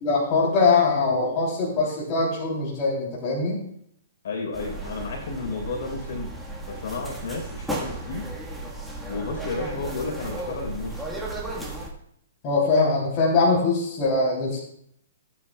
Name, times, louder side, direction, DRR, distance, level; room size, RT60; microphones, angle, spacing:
voice 1, 0.0-3.6 12.4-14.6, left 3 dB, 35° left, -4 dB, 3.1 m, -22 dB
voice 2, 4.2-6.3 6.7-8.3 9.1-11.0, left 3 dB, 65° left, 2 dB, 3.9 m, -32 dB
sound 1, 4.5-11.9, right 2 dB, 5° right, 1.5 m, -35 dB
17.0 x 9.2 x 2.3 m, 0.70 s
hypercardioid pair, 150°, 0 cm